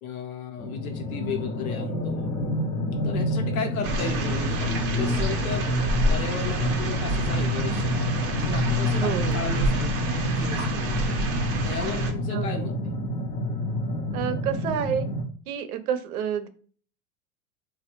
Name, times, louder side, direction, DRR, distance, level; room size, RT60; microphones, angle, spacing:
voice 1, 0.0-2.3 2.9-5.7 6.1-7.9 8.4-9.9 10.4-11.2 11.6-12.9, left 6 dB, 70° left, 4 dB, 0.9 m, -35 dB
sound 1, 0.6-15.2, left 1 dB, 20° left, 0.5 m, -28 dB
sound 2, 3.8-12.1, right 1 dB, 35° right, 0.6 m, -29 dB
voice 2, 9.0-9.4 12.3-12.7 14.1-15.1 15.5-16.5, right 8 dB, 80° right, 10 dB, 0.6 m, -29 dB
3.2 x 2.3 x 2.9 m, 0.43 s
hypercardioid pair, 115°, 43 cm